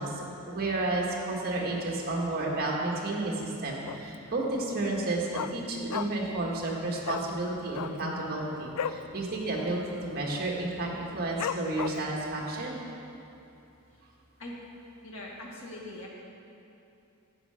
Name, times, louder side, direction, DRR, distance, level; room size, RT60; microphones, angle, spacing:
voice 1, 0.0-12.7, right 2 dB, 45° right, -3 dB, 1.8 m, -31 dB
Dog, 3.8-4.3 4.6-4.7 4.9-6.4 6.6-6.8 7.0-7.3 7.7-9.1 9.4-9.6 9.9-10.3 10.7-10.8 11.4-12.2 12.7-12.8, left 8 dB, 85° left, 0.3 m, -34 dB
voice 2, 15.0-16.1, left 1 dB, 65° left, -4 dB, 2.0 m, -41 dB
11.5 x 8.0 x 5.0 m, 2.8 s
head